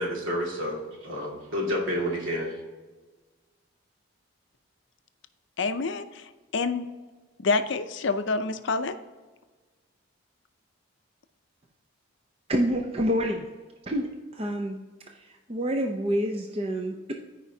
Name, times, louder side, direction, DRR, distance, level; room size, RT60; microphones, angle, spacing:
voice 1, 0.0-2.5, equal, 70° right, -2 dB, 2.1 m, -30 dB
voice 2, 5.6-6.9 7.4-9.0, left 4 dB, 55° left, 10 dB, 0.5 m, -27 dB
voice 3, 12.5-13.5 13.8-14.1 14.3-14.8 15.1-17.1, equal, 30° right, 2 dB, 0.5 m, -27 dB
13.5 x 5.0 x 2.7 m, 1.3 s
head